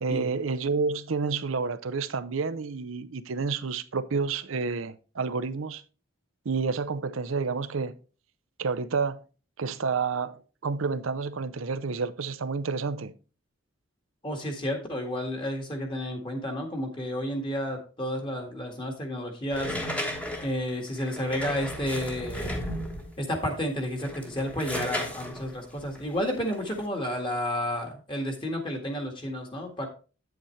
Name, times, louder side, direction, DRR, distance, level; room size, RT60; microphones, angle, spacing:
voice 1, 0.0-5.8 6.4-7.9 8.6-9.2 9.6-13.1, right 4 dB, 75° right, 0.6 m, -29 dB
voice 2, 14.2-19.8 20.4-22.6 23.2-29.9, equal, 25° left, 1.8 m, -31 dB
sound 1, 19.5-23.2 23.9-26.8, equal, 5° left, 1.3 m, -35 dB
8.8 x 7.9 x 3.2 m
head